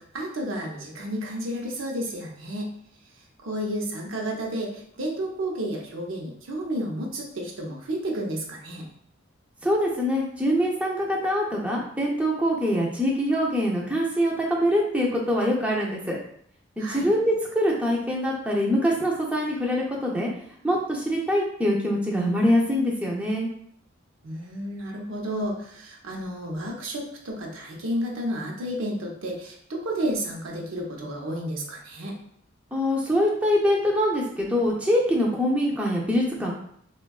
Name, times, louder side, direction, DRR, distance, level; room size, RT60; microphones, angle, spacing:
voice 1, 0.0-2.7 3.4-8.9 16.8-17.1 24.2-32.2, right 1 dB, 80° right, -1 dB, 0.6 m, -31 dB
voice 2, 9.6-16.2 16.8-20.3 20.6-23.5 32.7-36.5, equal, 5° right, -3 dB, 0.4 m, -24 dB
3.5 x 2.2 x 2.3 m, 0.65 s
head